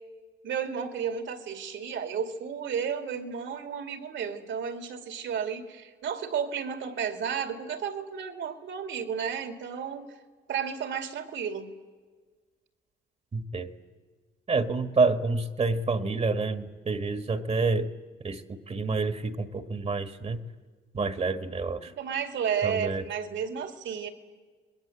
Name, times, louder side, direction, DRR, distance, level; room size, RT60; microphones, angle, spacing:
voice 1, 0.4-10.1 10.5-11.7 22.0-24.1, right 7 dB, 70° right, 7 dB, 2.5 m, -32 dB
voice 2, 13.3-13.7 14.5-17.9 18.2-18.4 18.7-20.4 20.9-21.9 22.6-23.0, right 3 dB, 35° right, 9 dB, 1.5 m, -28 dB
28.5 x 21.0 x 7.9 m, 1.4 s
cardioid pair, 90°, 20 cm